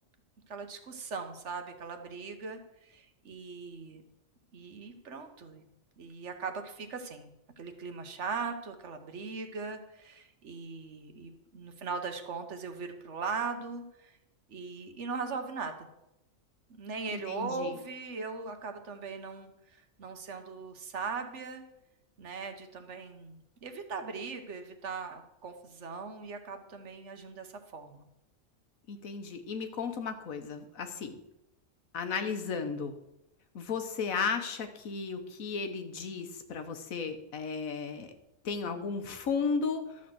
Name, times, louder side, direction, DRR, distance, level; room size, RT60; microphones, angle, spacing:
voice 1, 0.5-4.0 4.5-5.6 6.0-7.3 7.6-14.2 14.5-15.9 16.8-21.6 22.2-28.0, right 4 dB, 60° right, 7 dB, 1.3 m, -39 dB
voice 2, 17.1-17.8 28.9-31.1 31.9-32.9 33.5-38.1 38.4-40.0, left 5 dB, 90° left, 7 dB, 1.4 m, -34 dB
12.5 x 4.3 x 7.8 m, 0.87 s
omnidirectional pair, 1.4 m